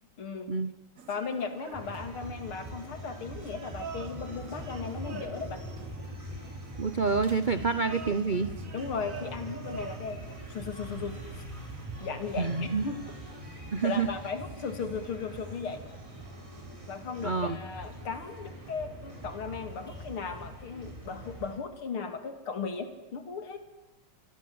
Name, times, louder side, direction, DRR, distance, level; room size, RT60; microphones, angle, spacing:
voice 1, 0.2-0.5 1.1-5.6 8.7-10.2 10.5-11.4 12.0-13.0 13.8-15.8 16.9-23.6, left 5 dB, 90° left, 9 dB, 3.5 m, -36 dB
sound 1, 1.0-20.1, right 4 dB, 40° right, 1.8 m, -49 dB
sound 2, 1.7-21.6, right 1 dB, 15° right, 5.5 m, -43 dB
voice 2, 6.8-8.6 12.4-12.9 13.7-14.1 17.2-17.6, right 4 dB, 60° right, 13 dB, 0.5 m, -28 dB
26.5 x 23.0 x 7.9 m, 1.1 s
omnidirectional pair, 2.3 m